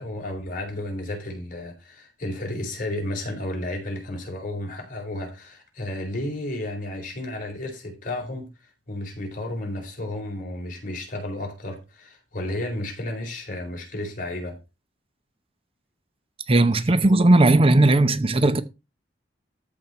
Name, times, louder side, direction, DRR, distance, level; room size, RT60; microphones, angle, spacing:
voice 1, 0.0-8.5 8.9-14.6, left 1 dB, 50° left, 4.2 m, -32 dB
voice 2, 16.5-18.6, right 2 dB, 30° right, 0.7 m, -17 dB
13.5 x 4.6 x 5.5 m
head